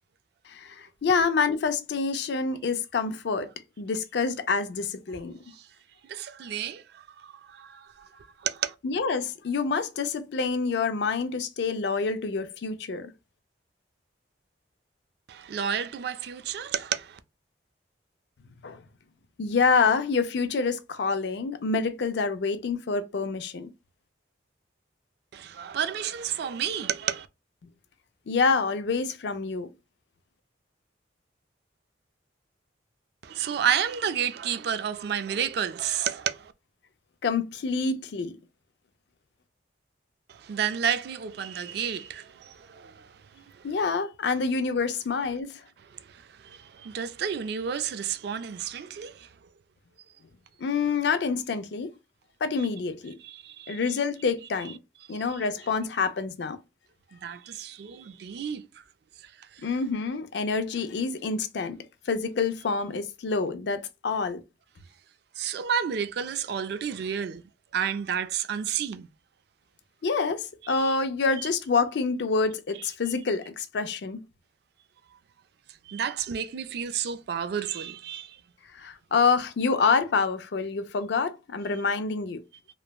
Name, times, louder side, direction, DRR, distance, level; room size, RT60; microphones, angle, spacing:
voice 1, 0.5-3.5 3.8-5.4 8.8-13.1 18.6-18.8 19.4-23.7 28.3-29.7 37.2-38.4 43.6-45.6 50.6-51.9 52.4-53.2 53.7-54.8 55.1-56.6 59.6-61.8 62.1-64.4 70.0-74.2 78.7-82.4, left 4 dB, 60° left, 0.4 m, -27 dB
voice 2, 6.1-8.7 15.3-17.2 25.3-27.3 33.2-36.5 40.3-43.1 43.3-43.4 46.1-49.3 53.2-53.8 57.1-58.7 65.4-67.4 67.7-69.1 70.7-71.0 71.4-71.5 75.9-78.4, right 8 dB, 55° right, 0.3 m, -31 dB
3.1 x 2.0 x 2.2 m
head